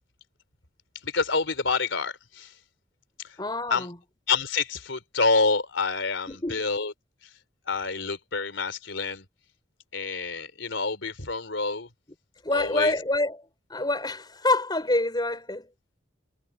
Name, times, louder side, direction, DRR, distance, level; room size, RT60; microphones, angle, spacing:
voice 1, 1.0-2.5 3.2-3.3 3.7-3.9 4.3-6.9 7.7-9.2 9.9-11.9 12.5-12.9, left 4 dB, 75° left, 3.4 m, -27 dB
voice 2, 3.4-4.0 6.3-6.7 12.4-15.7, left 2 dB, 20° left, 4.8 m, -27 dB
head